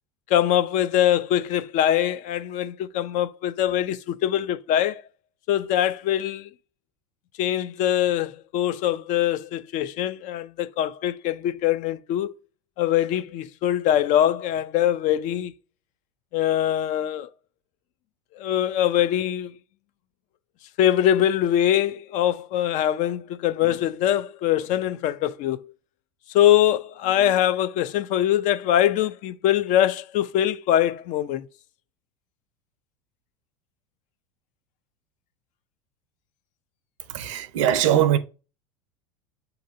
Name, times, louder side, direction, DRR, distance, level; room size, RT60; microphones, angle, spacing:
voice 1, 0.3-5.0 5.5-6.5 7.4-12.3 12.8-15.5 16.3-17.3 18.4-19.5 20.8-25.7 26.3-31.4, left 11 dB, 50° left, 0.4 m, -23 dB
voice 2, 37.1-38.2, right 11 dB, 70° right, 0.6 m, -21 dB
6.6 x 2.6 x 2.6 m
hypercardioid pair, 85°, 17 cm